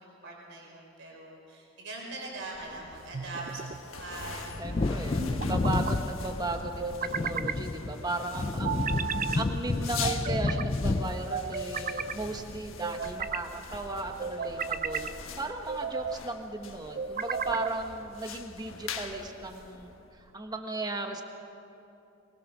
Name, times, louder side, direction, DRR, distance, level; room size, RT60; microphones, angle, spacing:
voice 1, 0.0-4.6, right 2 dB, 65° right, -1 dB, 5.1 m, -42 dB
sound 1, 2.4-20.3, left 5 dB, 90° left, 1.4 m, -43 dB
sound 2, 3.1-3.8 5.2-5.9 6.8-7.6 8.6-9.4 10.0-10.7 11.3-12.2 12.8-13.5 14.2-15.1 15.7-16.2 17.0-17.8, right 6 dB, 45° right, 0.6 m, -34 dB
Wind / Thunder, 4.5-12.8 13.1-13.2, left 2 dB, 25° left, 0.4 m, -31 dB
voice 2, 4.6-15.1 15.4-21.2, right 2 dB, 20° right, 4 dB, 1.3 m, -36 dB
23.5 x 21.0 x 6.2 m, 2.8 s
head